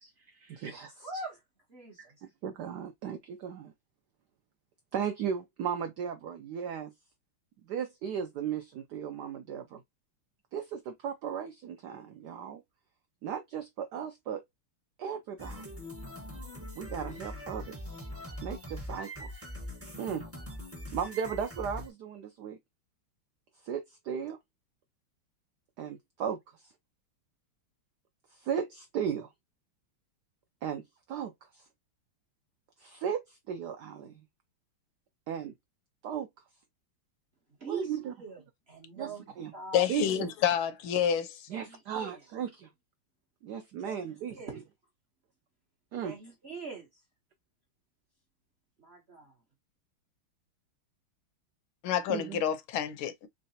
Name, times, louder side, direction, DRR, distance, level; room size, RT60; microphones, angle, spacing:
voice 1, 0.0-1.1 2.4-3.7 4.9-6.9 7.7-9.8 10.5-12.6 13.2-14.4 15.0-15.7 16.8-17.8 18.4-19.4 20.0-20.2 20.9-22.6 23.6-24.4 25.8-26.6 28.3-29.3 30.6-30.8 31.1-31.6 32.8-34.2 35.3-35.5 36.0-36.3 37.7-38.1 39.0-39.5 39.9-40.3 41.5-42.7 43.4-44.3 45.9-46.2 52.1-52.4, right 8 dB, 80° right, 0.9 m, -36 dB
voice 2, 1.0-1.4 1.7-2.2 37.5-40.3 41.5-42.2 43.8-44.6 46.0-47.0 48.8-49.4, right 4 dB, 45° right, 0.8 m, -43 dB
sound 1, 15.4-21.9, left 1 dB, 20° right, 0.4 m, -42 dB
voice 3, 39.7-41.5 51.8-53.3, left 9 dB, 75° left, 1.4 m, -28 dB
3.9 x 3.2 x 2.7 m
omnidirectional pair, 2.3 m